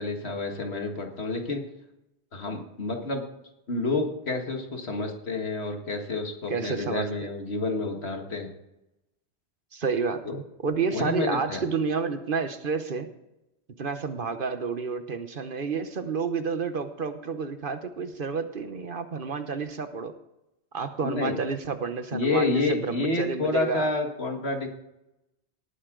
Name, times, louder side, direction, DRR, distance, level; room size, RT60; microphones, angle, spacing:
voice 1, 0.0-1.6 2.3-3.2 3.7-8.5 10.2-10.4 10.9-11.6 21.0-21.4 22.1-24.7, left 3 dB, 70° left, 3 dB, 2.1 m, -29 dB
voice 2, 6.5-7.3 9.7-13.1 13.8-20.1 20.7-23.9, right 5 dB, 55° right, 9 dB, 1.1 m, -30 dB
18.5 x 9.5 x 3.8 m, 0.91 s
omnidirectional pair, 1.1 m